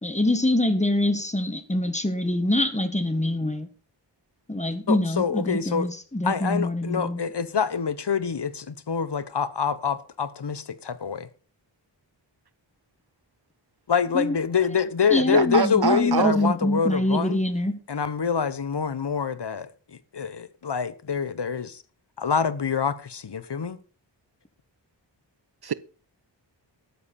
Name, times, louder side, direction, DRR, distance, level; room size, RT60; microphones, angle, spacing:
voice 1, 0.0-3.7 4.5-7.2 14.1-14.4 15.1-17.8, left 1 dB, 15° left, 1.6 m, -25 dB
voice 2, 4.9-5.9 6.2-11.3 13.9-17.4 17.9-19.7 20.1-21.8 22.2-23.8, left 6 dB, 65° left, 1.0 m, -26 dB
voice 3, 15.3-16.4 25.6-25.7, right 7 dB, 60° right, 0.6 m, -24 dB
13.0 x 9.9 x 4.2 m
wide cardioid pair, 70°, 45 cm